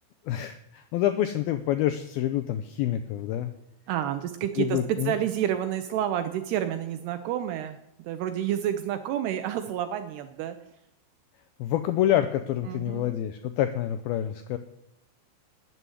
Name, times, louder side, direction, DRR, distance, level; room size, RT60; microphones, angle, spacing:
voice 1, 0.2-3.5 4.6-5.1 11.6-14.6, left 12 dB, 90° left, 9 dB, 2.1 m, -27 dB
voice 2, 3.9-4.8 5.1-10.6 12.7-13.1, right 11 dB, 80° right, 8 dB, 2.6 m, -29 dB
12.5 x 7.7 x 9.7 m, 0.81 s
omnidirectional pair, 5.1 m